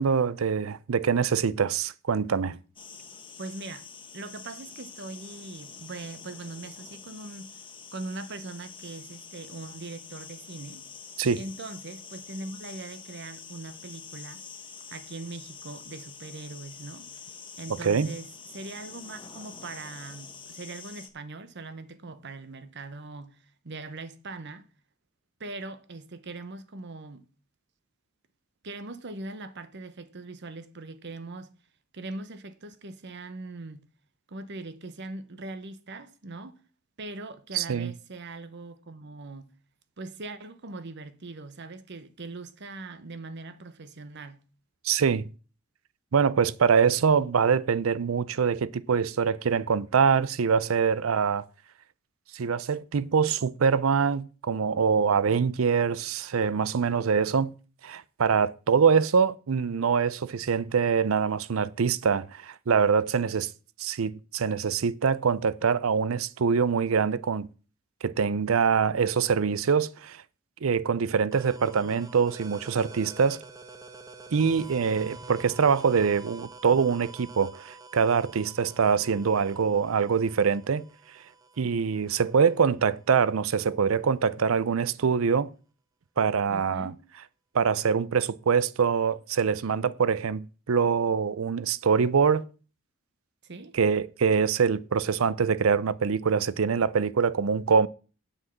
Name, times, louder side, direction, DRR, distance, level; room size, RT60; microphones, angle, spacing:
voice 1, 0.0-2.5 11.2-11.4 17.8-18.1 37.5-37.9 44.8-45.3 46.1-51.4 52.3-57.5 57.8-63.5 63.8-67.5 68.0-70.2 70.6-73.4 74.3-80.8 81.6-85.5 86.2-86.9 87.5-92.4 93.7-97.9, right 6 dB, 85° right, 0.5 m, -24 dB
sound 1, 2.8-21.1, left 6 dB, 25° left, 1.1 m, -46 dB
voice 2, 3.4-3.9 4.1-7.5 7.9-10.8 11.4-14.4 14.9-17.1 17.6-24.6 25.4-27.3 28.6-31.5 31.9-33.9 34.3-36.6 37.0-39.5 40.0-44.4 86.5-87.0 93.4-93.8, right 2 dB, 60° right, 0.9 m, -41 dB
sound 2, 71.3-82.7, right 3 dB, 20° right, 0.8 m, -47 dB
8.0 x 6.0 x 7.2 m
head